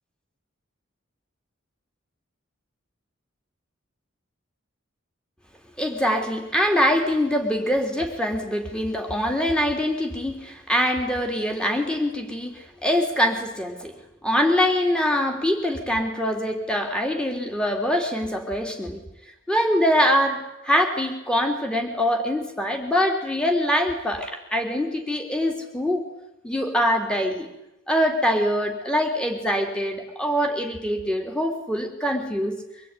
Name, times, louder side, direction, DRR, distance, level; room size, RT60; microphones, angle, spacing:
voice 1, 5.8-13.9 14.2-19.0 19.5-26.0 26.4-27.5 27.9-32.6, equal, 5° left, 3 dB, 3.6 m, -24 dB
25.0 x 22.0 x 9.9 m, 0.89 s
head